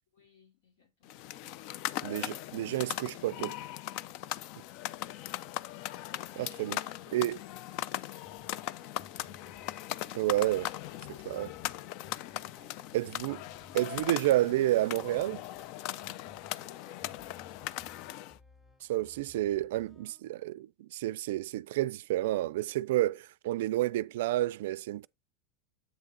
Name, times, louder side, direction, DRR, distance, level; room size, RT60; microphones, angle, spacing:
voice 1, 0.1-3.3 6.3-9.3 16.6-17.8, left 6 dB, 75° left, 3.0 m, -64 dB
sound 1, 1.0-18.4, left 14 dB, 60° left, 0.4 m, -39 dB
voice 2, 2.0-3.5 6.4-6.8 7.1-7.4 10.1-10.7 11.3-11.5 12.9-13.4 13.7-15.4 18.8-25.1, right 15 dB, 75° right, 0.3 m, -30 dB
sound 2, 8.3-20.2, left 2 dB, 15° left, 0.9 m, -60 dB
8.1 x 3.7 x 4.0 m
hypercardioid pair, 95°, 0 cm